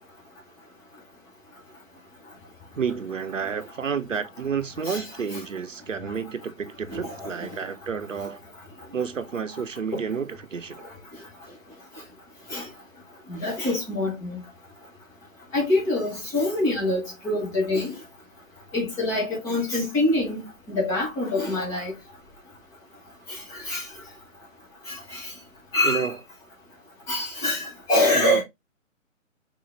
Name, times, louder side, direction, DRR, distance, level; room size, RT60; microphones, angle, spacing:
voice 1, 2.8-8.4 8.9-10.8 25.8-26.2 28.1-28.4, right 6 dB, 70° right, 0.8 m, -30 dB
voice 2, 6.9-7.3 12.5-12.6 13.3-14.4 15.5-18.0 18.7-22.0 23.3-23.9 24.9-25.3 25.7-26.1 27.1-28.4, left 2 dB, 10° left, 1.0 m, -25 dB
3.8 x 3.7 x 3.2 m
figure-of-eight pair, 135°, 40 cm